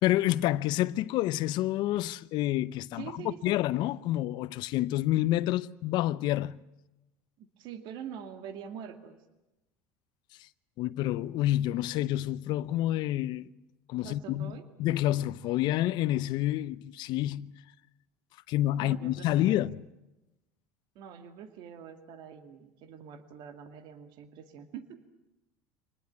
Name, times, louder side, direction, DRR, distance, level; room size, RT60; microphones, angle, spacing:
voice 1, 0.0-6.6 10.8-13.5 13.9-14.5 14.8-17.5 18.5-19.8, left 14 dB, 60° left, 0.8 m, -28 dB
voice 2, 2.9-3.6 7.4-9.2 14.0-14.6 18.8-19.7 21.0-25.0, right 8 dB, 60° right, 2.2 m, -45 dB
25.0 x 20.0 x 8.6 m
supercardioid pair, 100°, 9 cm